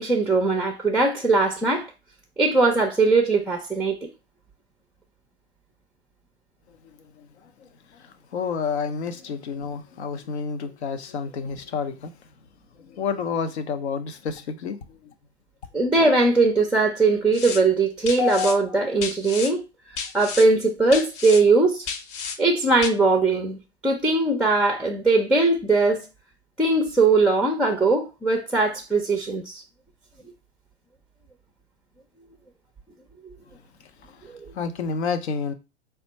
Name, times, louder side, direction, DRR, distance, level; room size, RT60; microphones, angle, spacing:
voice 1, 0.0-1.9 2.4-4.0 15.7-19.6 20.1-21.9 22.4-23.6 23.8-26.0 26.6-29.6, right 3 dB, ahead, 0.4 m, -20 dB
voice 2, 7.9-12.1 12.8-15.1 34.5-35.5, left 5 dB, 75° left, 0.7 m, -29 dB
sound 1, 17.3-17.6 18.1-18.6 19.0-19.5 20.0-20.5 20.9-21.4 21.9-22.4 22.8-22.9, left 6 dB, 40° left, 0.7 m, -32 dB
4.2 x 2.3 x 4.0 m
hypercardioid pair, 100°, 34 cm